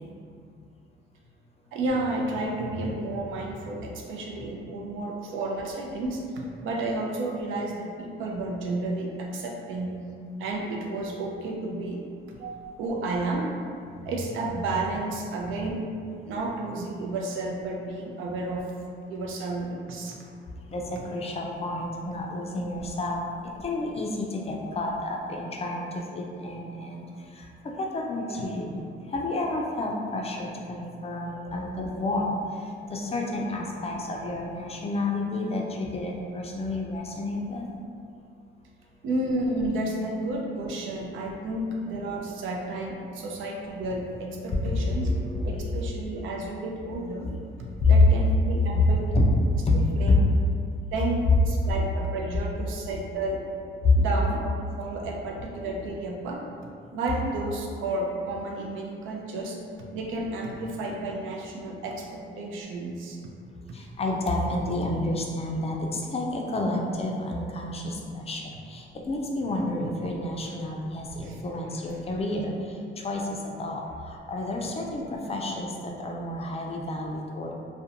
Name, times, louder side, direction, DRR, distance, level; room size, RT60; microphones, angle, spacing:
voice 1, 1.7-6.2 6.6-9.9 10.4-12.0 12.4-13.5 14.0-15.8 16.3-18.7 19.1-20.3 28.3-28.5 31.4-31.5 39.0-45.1 45.4-47.3 47.9-49.0 49.7-50.2 50.9-53.4 54.0-56.4 56.9-59.6 59.9-63.2 71.2-71.4, right 2 dB, 80° right, -1 dB, 0.5 m, -31 dB
voice 2, 20.7-23.2 23.6-27.0 27.4-28.8 29.1-32.4 32.9-37.6 44.6-46.3 48.7-48.8 49.1-49.2 49.6-49.7 63.7-72.5 73.0-73.2 73.6-73.8 74.1-77.5, left 2 dB, 30° left, 0 dB, 0.4 m, -30 dB
2.4 x 2.1 x 2.8 m, 2.3 s
cardioid pair, 90°, 20 cm